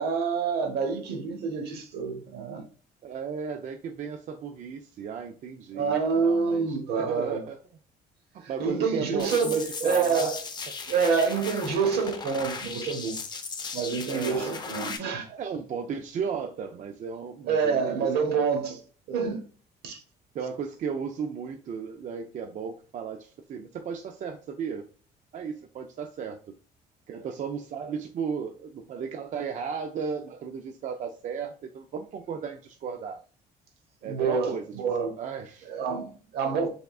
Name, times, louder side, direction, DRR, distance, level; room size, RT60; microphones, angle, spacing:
voice 1, 0.0-2.7 5.7-7.4 8.4-10.4 10.9-13.2 13.7-15.3 17.4-18.8 19.1-19.4 19.8-20.0 34.0-35.2 35.6-36.7, right 5 dB, 70° right, 1.0 m, -27 dB
voice 2, 3.0-7.6 8.3-10.3 14.1-14.5 15.3-18.5 20.3-24.9 25.3-26.6 27.1-33.2 34.0-34.7 35.2-35.7 36.6-36.7, right 6 dB, 45° right, 0.4 m, -35 dB
sound 1, 9.2-15.0, left 4 dB, 25° left, 0.6 m, -37 dB
3.5 x 3.4 x 2.3 m
cardioid pair, 110°, 17 cm